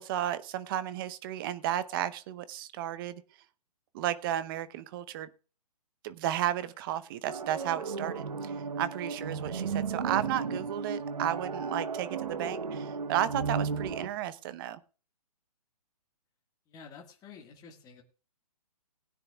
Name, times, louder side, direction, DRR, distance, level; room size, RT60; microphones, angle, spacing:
voice 1, 0.0-3.2 3.9-5.3 6.0-14.8, right 12 dB, 35° right, 14 dB, 0.8 m, -33 dB
sound 1, 7.2-14.1, right 5 dB, 75° right, 1.1 m, -34 dB
voice 2, 16.7-18.0, left 5 dB, 20° left, 2 dB, 1.7 m, -50 dB
20.0 x 9.8 x 2.3 m, 0.35 s
hypercardioid pair, 135°, 20 cm